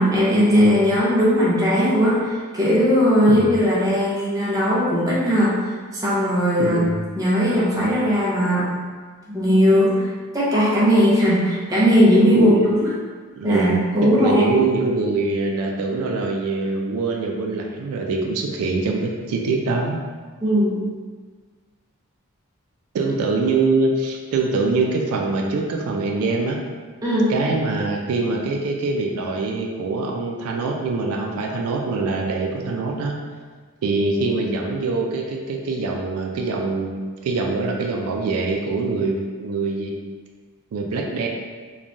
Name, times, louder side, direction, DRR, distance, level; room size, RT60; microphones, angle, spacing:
voice 1, 0.0-5.5 5.9-6.8 7.1-8.7 9.3-10.1 10.3-12.9 13.4-14.5 20.4-20.8 27.0-27.3, equal, 15° right, -8 dB, 0.5 m, -18 dB
voice 2, 6.6-7.0 12.3-12.7 13.3-20.0 22.9-26.6 27.3-33.1 33.8-39.9 40.7-41.3, right 3 dB, 80° right, 1 dB, 0.3 m, -24 dB
3.1 x 2.2 x 2.5 m, 1.5 s
head